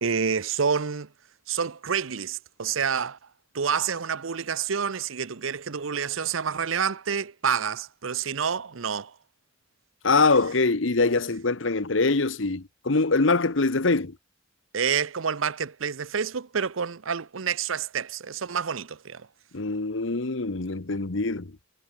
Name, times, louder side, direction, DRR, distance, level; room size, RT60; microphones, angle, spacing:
voice 1, 0.0-1.1 1.5-3.2 3.5-9.1 14.7-19.3, right 6 dB, 85° right, 0.8 m, -28 dB
voice 2, 10.0-14.2 19.5-21.6, left 3 dB, 70° left, 1.2 m, -23 dB
head